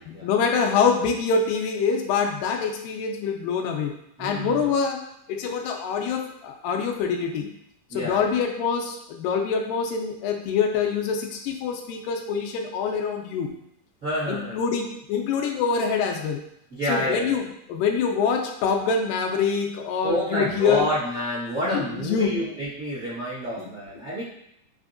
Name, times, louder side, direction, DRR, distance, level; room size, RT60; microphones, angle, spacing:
voice 1, 0.1-3.9 4.2-5.0 5.3-7.5 7.9-13.5 14.3-16.4 16.9-20.8 21.6-22.3 23.6-23.7, left 6 dB, 90° left, 3 dB, 2.3 m, -25 dB
voice 2, 4.2-4.7 7.9-8.3 14.0-14.6 16.7-17.3 20.0-24.2, equal, 40° right, -12 dB, 1.0 m, -28 dB
5.5 x 3.4 x 2.5 m, 0.77 s
omnidirectional pair, 3.9 m